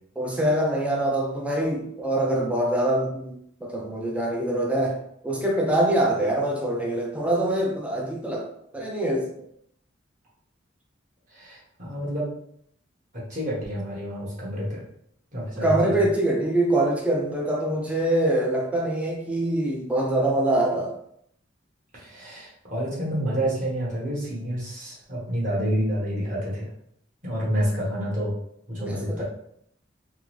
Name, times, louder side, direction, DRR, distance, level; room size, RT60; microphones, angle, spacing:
voice 1, 0.2-5.0 5.2-8.5 8.7-9.3 15.6-20.9 28.8-29.2, right 1 dB, 5° right, -1 dB, 0.4 m, -24 dB
voice 2, 11.3-12.3 13.3-14.8 15.3-16.1 21.9-26.7 27.2-28.3 28.7-29.2, equal, 40° right, -6 dB, 1.3 m, -28 dB
3.6 x 2.0 x 3.1 m, 0.71 s
head